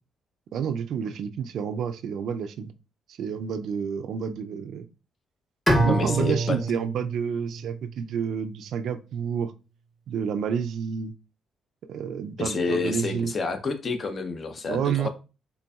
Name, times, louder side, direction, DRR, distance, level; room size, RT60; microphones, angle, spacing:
voice 1, 0.5-2.7 3.2-4.9 5.8-9.5 10.1-11.1 11.9-13.3 14.7-15.1, right 7 dB, 70° right, 0.3 m, -29 dB
Bowed string instrument, 5.7-8.7, right 1 dB, 10° left, 1.0 m, -27 dB
voice 2, 5.9-6.6 12.4-15.1, left 4 dB, 45° left, 0.6 m, -29 dB
3.9 x 3.4 x 2.3 m
cardioid pair, 90°, 0 cm